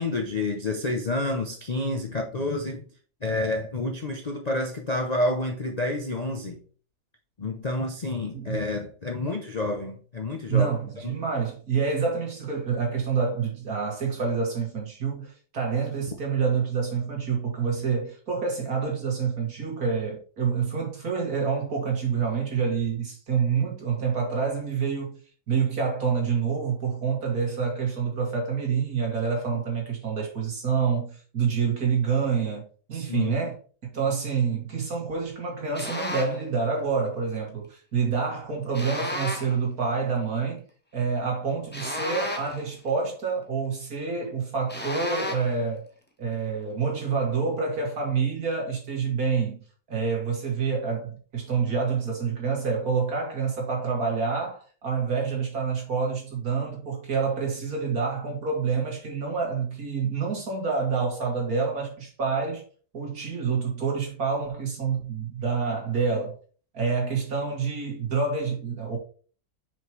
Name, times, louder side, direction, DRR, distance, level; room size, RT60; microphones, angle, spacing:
voice 1, 0.0-2.8 3.2-6.6 7.4-10.7 11.0-11.2 29.5-29.6 32.9-33.4, left 2 dB, 40° left, 0.6 m, -29 dB
voice 2, 10.5-25.2 25.5-32.6 32.9-33.6 33.9-40.6 40.9-45.9 46.2-49.6 49.9-62.6 62.9-66.4 66.7-69.0, right 5 dB, 65° right, 2.6 m, -27 dB
sound 1, 35.7-36.4 38.7-39.6 41.7-42.7 44.7-45.6, left 1 dB, 10° left, 0.9 m, -33 dB
6.0 x 5.4 x 3.1 m
omnidirectional pair, 1.7 m